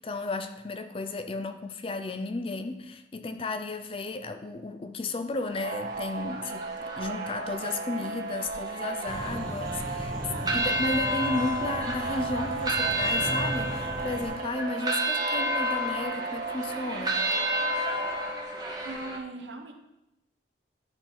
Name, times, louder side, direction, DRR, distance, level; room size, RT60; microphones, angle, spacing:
voice 1, 0.0-17.2, left 2 dB, 30° left, 0.4 m, -34 dB
sound 1, 5.4-19.2, right 1 dB, 20° right, 0.7 m, -32 dB
sound 2, 5.6-18.3, right 4 dB, 50° right, 0.4 m, -36 dB
sound 3, 9.1-14.3, equal, 5° left, 0.9 m, -37 dB
voice 2, 18.8-19.7, right 2 dB, 80° right, 0.9 m, -39 dB
10.5 x 4.2 x 3.9 m
head